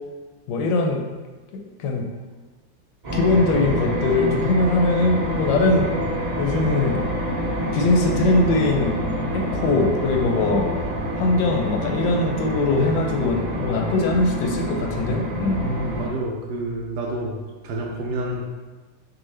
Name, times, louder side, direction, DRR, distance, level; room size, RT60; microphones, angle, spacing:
voice 1, 0.5-1.1 1.5-2.1 3.1-5.9 6.4-7.0 7.7-9.0 9.3-10.7 11.2-15.6, left 2 dB, 75° left, 1 dB, 1.2 m, -21 dB
sound 1, 3.0-16.1, equal, 35° right, 0.7 m, -27 dB
sound 2, 5.5-13.1, left 1 dB, 35° left, 0.7 m, -36 dB
voice 2, 15.6-17.4 17.6-18.4, right 1 dB, 75° right, -1 dB, 1.0 m, -28 dB
4.8 x 2.6 x 3.2 m, 1.3 s
omnidirectional pair, 2.1 m